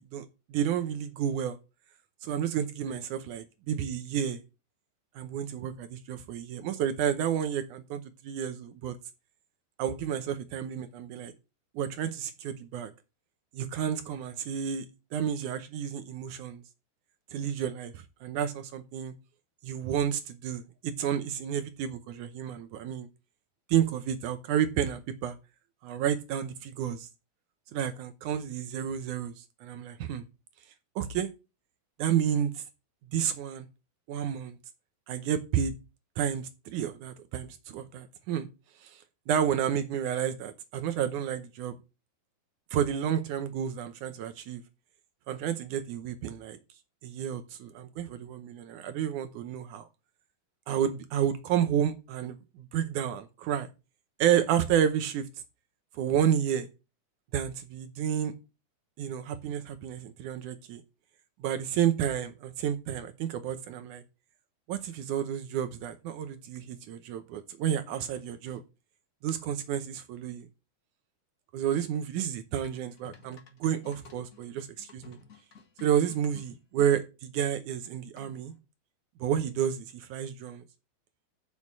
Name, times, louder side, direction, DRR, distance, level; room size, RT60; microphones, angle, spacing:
voice 1, 0.0-1.6 2.2-4.4 5.2-9.0 9.8-11.3 11.8-12.9 13.5-14.9 15.1-16.6 17.3-19.1 19.6-23.1 23.7-25.4 25.8-27.1 27.7-30.2 31.0-31.3 32.0-32.6 33.1-33.7 34.1-34.6 35.1-35.7 36.2-38.5 38.8-41.8 42.7-44.6 45.3-46.6 47.0-49.9 50.7-53.7 54.2-55.3 55.9-56.7 57.3-58.3 59.0-60.8 61.4-64.0 64.7-68.6 69.2-70.5 71.5-75.2 75.8-78.5 79.2-80.6, right 9 dB, 75° right, 2.3 m, -31 dB
sound 1, 72.6-76.9 78.2-78.6, left 5 dB, 35° left, 1.5 m, -54 dB
7.0 x 6.3 x 7.3 m
omnidirectional pair, 3.6 m